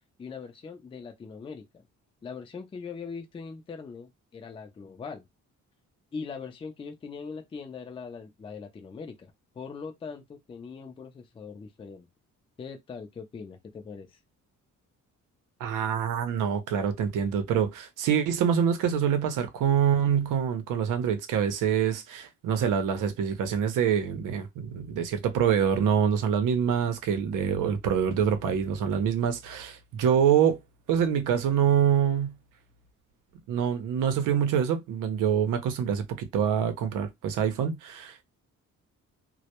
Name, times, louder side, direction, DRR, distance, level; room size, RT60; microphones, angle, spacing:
voice 1, 0.2-1.8 2.2-5.2 6.1-12.1 12.6-14.1, left 5 dB, 20° left, 0.4 m, -41 dB
voice 2, 15.6-30.6 30.9-32.3 33.5-38.2, right 8 dB, 90° right, 0.6 m, -25 dB
2.2 x 2.1 x 2.8 m
cardioid pair, 145°, 31 cm